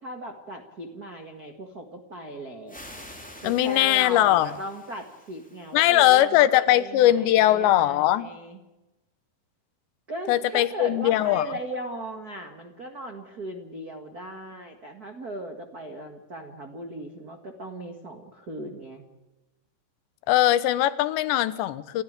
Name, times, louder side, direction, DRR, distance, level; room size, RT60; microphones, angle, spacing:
voice 1, 0.0-2.8 3.4-8.6 10.1-19.0, right 1 dB, 85° right, 5 dB, 0.8 m, -38 dB
sound 1, 2.7-6.3, equal, ahead, 2.5 m, -47 dB
voice 2, 3.4-4.6 5.7-8.3 10.3-11.5 20.3-22.0, left 14 dB, 85° left, 14 dB, 3.2 m, -20 dB
29.0 x 14.5 x 8.8 m, 1.0 s
omnidirectional pair, 5.0 m